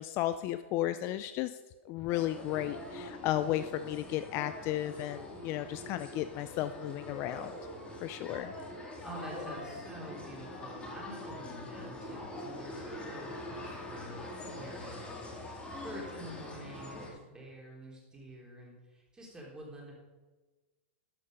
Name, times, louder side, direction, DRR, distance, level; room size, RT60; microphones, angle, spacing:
voice 1, 0.0-1.6 1.9-7.6 8.0-8.5, left 13 dB, 35° left, 12 dB, 0.4 m, -34 dB
sound 1, 2.1-17.1, left 1 dB, 15° left, 2.3 m, -44 dB
voice 2, 9.0-19.9, right 1 dB, 10° right, -3 dB, 3.3 m, -47 dB
12.5 x 6.5 x 5.3 m, 1.2 s
hypercardioid pair, 135°, 7 cm